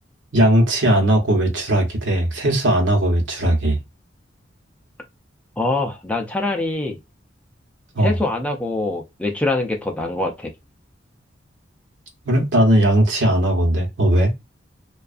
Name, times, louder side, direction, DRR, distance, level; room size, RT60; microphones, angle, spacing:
voice 1, 0.3-3.8 7.9-8.1 12.3-14.3, right 1 dB, 75° right, 0.9 m, -18 dB
voice 2, 5.6-7.0 8.0-10.5, left 2 dB, 5° left, 0.4 m, -24 dB
2.5 x 2.3 x 2.4 m
head